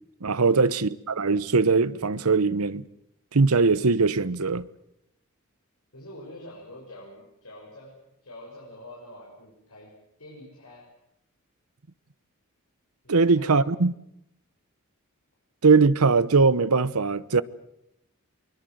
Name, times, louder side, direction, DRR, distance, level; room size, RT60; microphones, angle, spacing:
voice 1, 0.2-2.8 3.3-4.7 13.1-13.9 15.6-17.4, right 4 dB, 90° right, 0.9 m, -21 dB
voice 2, 5.9-8.0 8.2-10.9 13.0-13.7, left 1 dB, 90° left, 6.6 m, -46 dB
23.5 x 22.0 x 7.9 m
head